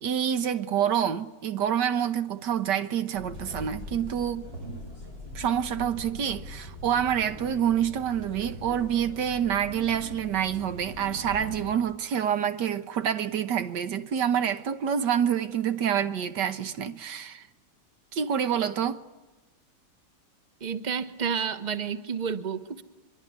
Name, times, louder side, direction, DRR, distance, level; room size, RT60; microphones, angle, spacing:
voice 1, 0.0-4.5 5.4-17.5 18.1-19.0, right 9 dB, 85° right, 1.7 m, -27 dB
sound 1, 3.1-11.7, left 1 dB, 65° right, 7.9 m, -41 dB
voice 2, 20.6-22.8, right 6 dB, 30° right, 1.2 m, -30 dB
24.0 x 23.0 x 9.5 m
omnidirectional pair, 1.8 m